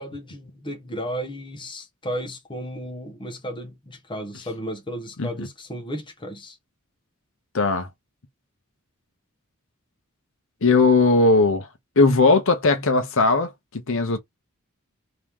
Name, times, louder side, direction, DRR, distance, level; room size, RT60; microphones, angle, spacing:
voice 1, 0.0-6.6, equal, 20° left, 1.0 m, -34 dB
voice 2, 7.5-7.9 10.6-11.7 12.0-13.5 13.9-14.2, left 3 dB, 65° left, 0.8 m, -18 dB
3.0 x 2.9 x 3.6 m
head